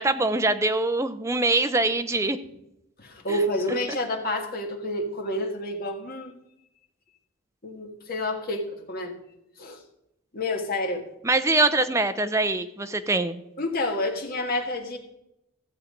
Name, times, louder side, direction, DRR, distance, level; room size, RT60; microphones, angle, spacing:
voice 1, 0.0-2.4 11.2-13.4, right 2 dB, 15° right, 9 dB, 0.5 m, -23 dB
voice 2, 3.0-6.4 7.6-9.1 9.6-9.8 10.3-11.1 13.6-15.0, left 1 dB, 45° left, 3 dB, 1.7 m, -29 dB
14.5 x 7.4 x 5.1 m, 0.85 s
head